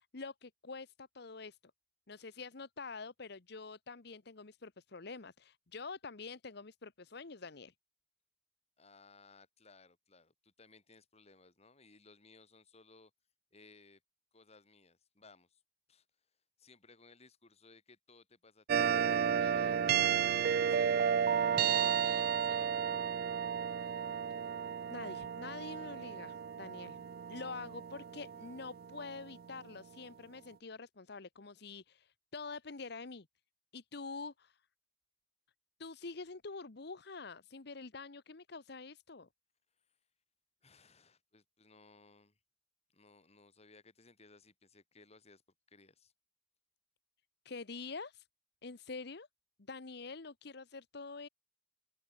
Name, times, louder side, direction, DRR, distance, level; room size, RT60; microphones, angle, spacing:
voice 1, 0.0-1.6 2.1-7.7 24.9-33.3 33.7-34.6 35.8-39.3 47.4-48.3 48.6-49.3 49.7-51.3, left 4 dB, 65° left, 1.1 m, -46 dB
voice 2, 8.8-13.1 13.5-14.0 14.3-15.6 15.9-16.1 16.6-18.9 19.4-21.1 21.6-22.8 40.6-42.4 42.9-45.4 45.7-46.1, left 3 dB, 35° left, 3.9 m, -61 dB
sound 1, 18.7-29.4, right 8 dB, 55° right, 0.4 m, -32 dB
open air
head